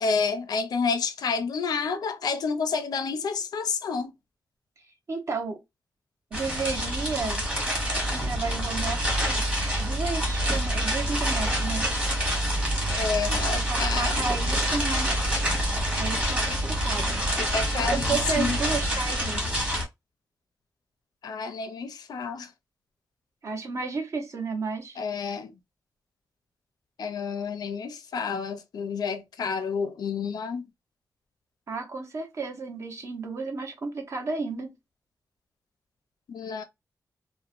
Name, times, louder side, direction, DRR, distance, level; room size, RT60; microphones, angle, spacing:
voice 1, 0.0-4.1 13.0-14.2 17.4-18.6 21.2-22.5 25.0-25.5 27.0-30.7 36.3-36.6, left 5 dB, 85° left, 0.5 m, -29 dB
voice 2, 5.1-5.6 6.3-7.4 8.1-9.5 9.8-11.9 13.5-15.3 16.0-17.3 17.7-19.4 23.4-25.0 31.7-34.7, right 4 dB, 50° right, 0.7 m, -32 dB
sound 1, 6.3-19.8, equal, 20° right, 1.2 m, -26 dB
2.9 x 2.1 x 2.4 m
wide cardioid pair, 160°, 7 cm